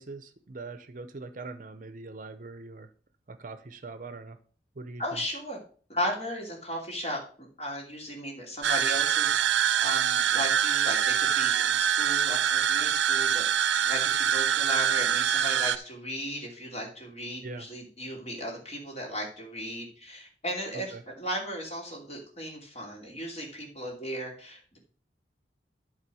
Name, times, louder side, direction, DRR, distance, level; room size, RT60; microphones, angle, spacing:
voice 1, 0.0-2.9 3.3-4.4 4.8-5.0 17.4-17.7 20.7-21.0, right 3 dB, 45° right, 11 dB, 0.7 m, -42 dB
voice 2, 5.0-5.6 5.9-13.4 13.9-24.8, equal, 35° left, -1 dB, 2.8 m, -36 dB
sound 1, 8.6-15.8, right 9 dB, 85° right, 0.5 m, -25 dB
11.0 x 3.8 x 6.1 m, 0.42 s
head